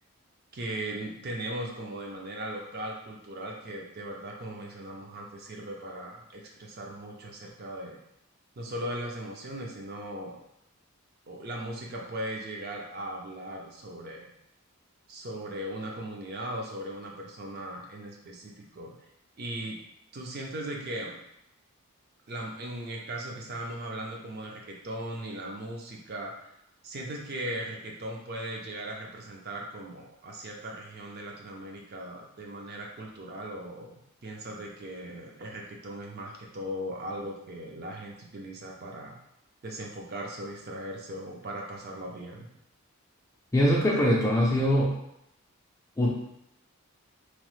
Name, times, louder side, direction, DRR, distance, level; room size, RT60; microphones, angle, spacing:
voice 1, 0.5-8.0 8.6-10.4 11.3-14.3 15.1-18.9 19.4-19.8 20.1-21.2 22.3-26.5 26.8-39.2 39.6-42.5, right 1 dB, 45° right, 0 dB, 0.5 m, -38 dB
voice 2, 43.5-44.9 46.0-46.1, equal, 15° left, -3 dB, 0.4 m, -22 dB
2.9 x 2.1 x 3.1 m, 0.80 s
head